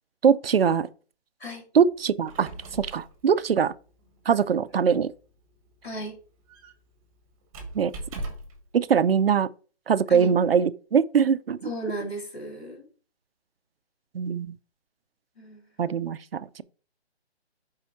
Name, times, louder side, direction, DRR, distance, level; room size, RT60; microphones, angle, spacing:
voice 1, 0.2-0.9 1.7-2.5 2.8-3.7 4.3-5.1 7.7-7.9 8.7-9.5 9.9-11.6 14.1-14.6 15.8-16.6, right 7 dB, 60° right, 0.6 m, -22 dB
Squeak, 2.0-8.7, right 2 dB, 10° right, 1.2 m, -42 dB
voice 2, 5.8-6.2 10.1-10.3 11.6-12.9 15.4-15.7, right 1 dB, 65° left, 3.7 m, -35 dB
7.2 x 4.7 x 4.3 m
hypercardioid pair, 160°, 34 cm